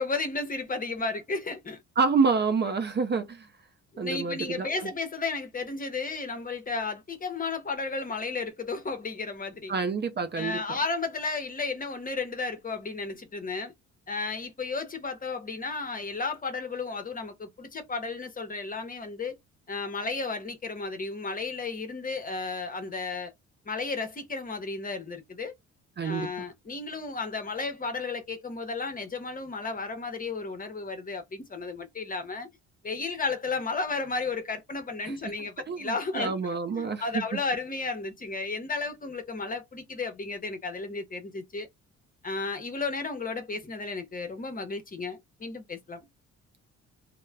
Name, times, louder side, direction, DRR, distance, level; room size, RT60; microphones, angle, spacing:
voice 1, 0.0-1.8 3.9-9.7 10.4-13.7 14.1-19.4 19.7-23.3 23.7-25.5 26.0-32.5 32.8-36.3 36.7-41.7 42.2-46.0, left 4 dB, 30° left, 0.8 m, -33 dB
voice 2, 2.0-3.4 4.0-4.9 9.7-10.8 26.0-26.3 35.0-35.1 35.7-37.2, right 5 dB, 35° right, 0.5 m, -28 dB
2.3 x 2.1 x 3.2 m
cardioid pair, 90°, 30 cm